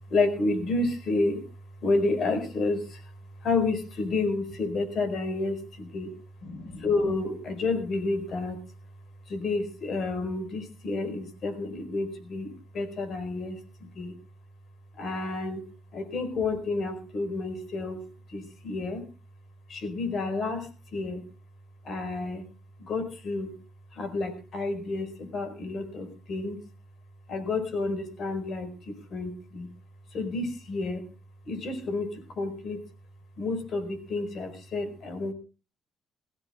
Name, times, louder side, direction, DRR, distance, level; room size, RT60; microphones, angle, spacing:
voice 1, 0.1-1.4 1.8-3.0 3.4-6.1 6.4-8.6 9.3-14.1 15.0-15.6 15.9-18.0 18.3-19.0 19.7-21.2 21.8-22.4 22.8-23.6 23.9-26.6 27.3-29.7 30.1-31.0 31.4-32.8 33.4-35.3, left 3 dB, 60° left, 9 dB, 4.8 m, -30 dB
22.0 x 16.5 x 2.4 m, 0.32 s
cardioid pair, 90°, 0 cm